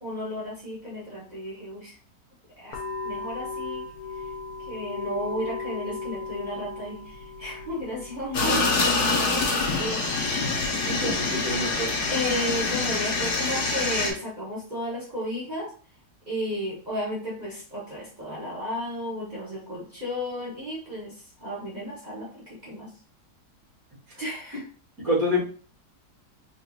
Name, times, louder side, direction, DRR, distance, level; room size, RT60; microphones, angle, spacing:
voice 1, 0.0-1.9 2.6-2.8 3.0-3.9 4.7-8.7 9.3-10.0 12.1-15.7 16.3-21.1 21.4-22.9 24.2-24.6, equal, 30° right, -6 dB, 0.9 m, -33 dB
sound 1, 2.7-13.3, left 3 dB, 70° left, 1.1 m, -38 dB
sound 2, 8.3-14.1, left 3 dB, 50° left, 0.6 m, -25 dB
voice 2, 10.8-11.9 25.0-25.4, left 1 dB, 60° right, -5 dB, 2.0 m, -27 dB
3.9 x 2.7 x 2.4 m, 0.41 s
omnidirectional pair, 1.8 m